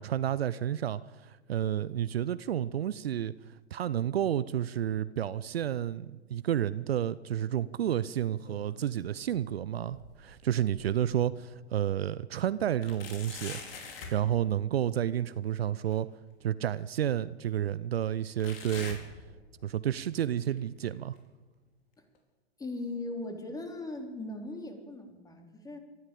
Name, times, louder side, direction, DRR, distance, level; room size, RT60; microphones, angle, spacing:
voice 1, 0.0-3.3 3.7-13.6 14.1-16.1 16.4-19.0 19.6-21.2, right 10 dB, 65° right, 17 dB, 0.8 m, -30 dB
sound 1, 8.3-9.0 9.3-11.2 11.7-11.8 12.8-14.2 15.9-16.0 16.9-17.0 18.4-19.8 20.1-20.5 21.2-21.3 22.1-22.2, left 5 dB, 60° left, 4.8 m, -45 dB
voice 2, 22.6-25.8, left 2 dB, 10° left, 5 dB, 3.5 m, -39 dB
23.5 x 14.5 x 8.5 m, 1.3 s
figure-of-eight pair, 105°, 33 cm